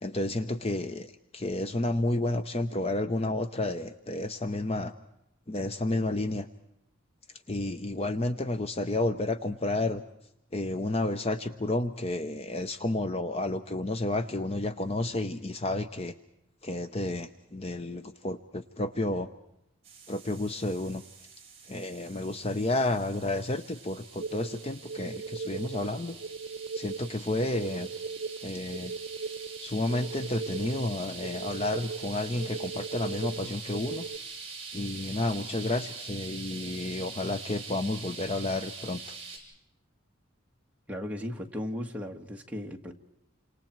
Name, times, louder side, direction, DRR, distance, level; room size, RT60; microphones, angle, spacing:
voice 1, 0.0-4.9 5.5-6.5 7.5-10.0 10.5-16.1 16.6-19.3 20.1-21.0 21.7-26.2 26.7-27.9 28.4-28.9 29.6-34.1 34.7-39.4, left 2 dB, 30° left, 10 dB, 0.7 m, -31 dB
sound 1, 19.8-39.4, right 4 dB, 30° right, 7.6 m, -44 dB
sound 2, 24.2-34.2, right 4 dB, 65° right, 0.9 m, -38 dB
voice 2, 40.9-42.9, left 1 dB, 5° right, 1 dB, 1.7 m, -36 dB
29.0 x 26.5 x 4.5 m, 0.84 s
head